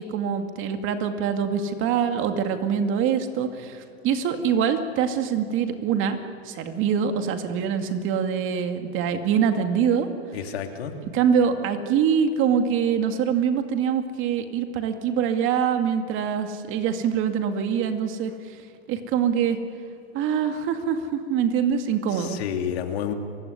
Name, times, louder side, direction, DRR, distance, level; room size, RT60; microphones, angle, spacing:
voice 1, 0.0-6.2 6.4-10.1 11.1-18.6 18.9-19.6 20.1-22.4, right 7 dB, 40° right, 6 dB, 2.4 m, -24 dB
voice 2, 10.3-10.9 22.2-23.1, left 9 dB, 70° left, 5 dB, 2.7 m, -29 dB
29.5 x 16.5 x 9.8 m, 2.5 s
hypercardioid pair, 120°, 32 cm